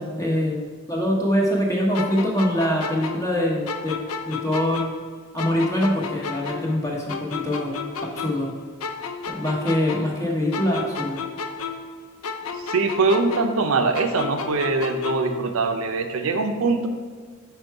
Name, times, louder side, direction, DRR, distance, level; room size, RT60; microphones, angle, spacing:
voice 1, 0.0-4.0 4.2-4.9 5.3-8.5 9.3-11.2, left 1 dB, 15° left, -2 dB, 1.0 m, -24 dB
sound 1, 1.9-5.1 5.4-8.5 8.8-12.0 12.2-15.4, left 5 dB, 85° left, 0.5 m, -32 dB
voice 2, 12.6-16.9, right 3 dB, 75° right, 6 dB, 0.5 m, -22 dB
5.2 x 4.6 x 4.6 m, 1.5 s
head